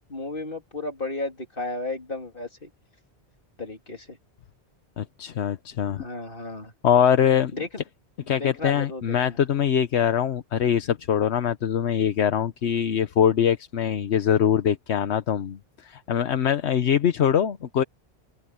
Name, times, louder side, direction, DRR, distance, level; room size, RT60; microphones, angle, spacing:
voice 1, 0.1-2.7 3.6-4.2 5.9-6.7 7.5-7.7 8.2-9.4, left 2 dB, 50° left, 3.5 m, -34 dB
voice 2, 5.0-6.0 6.8-7.5 8.3-17.8, left 9 dB, 75° left, 1.1 m, -23 dB
open air
omnidirectional pair, 1.1 m